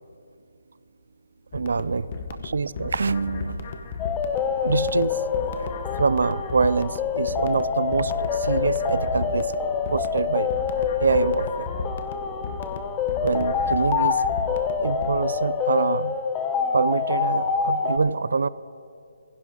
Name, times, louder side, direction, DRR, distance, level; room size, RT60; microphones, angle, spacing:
sound 1, 1.5-15.1, left 4 dB, 30° left, 0.8 m, -35 dB
voice 1, 1.5-2.1 2.4-3.8 4.6-5.2 5.5-5.7 6.0-9.5 9.9-10.5 11.0-11.7 13.2-14.2 14.8-16.2 16.7-18.5, right 4 dB, 70° right, 18 dB, 0.4 m, -25 dB
sound 2, 4.0-18.0, left 6 dB, 10° left, 0.4 m, -26 dB
16.0 x 16.0 x 3.6 m, 2.5 s
hypercardioid pair, 175°, 0 cm